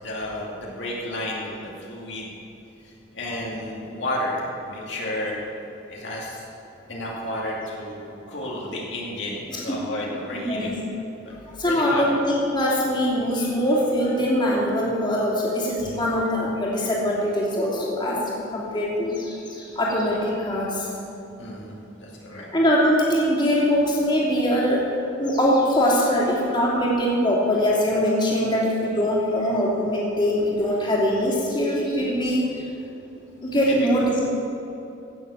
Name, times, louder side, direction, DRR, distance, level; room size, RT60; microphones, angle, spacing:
voice 1, 0.0-2.3 2.8-5.4 5.9-6.4 6.9-10.8 11.2-11.3 11.6-12.0 21.4-22.5 33.6-34.1, left 1 dB, 65° left, -4 dB, 2.4 m, -32 dB
voice 2, 10.3-10.8 11.6-18.2 18.5-20.9 22.3-24.9 25.2-32.7 33.4-34.2, equal, 25° left, -5 dB, 2.9 m, -22 dB
17.0 x 7.1 x 7.2 m, 2.8 s
head